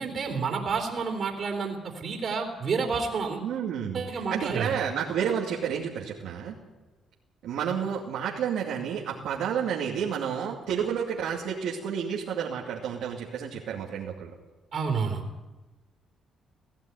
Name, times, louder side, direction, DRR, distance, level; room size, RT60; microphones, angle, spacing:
voice 1, 0.0-3.4 3.9-4.7 14.7-15.2, right 5 dB, 50° right, 1 dB, 3.4 m, -29 dB
voice 2, 3.4-6.6 7.4-14.3, right 8 dB, 85° right, -2 dB, 2.4 m, -30 dB
18.5 x 14.5 x 9.5 m, 1.1 s
cardioid pair, 90°, 0 cm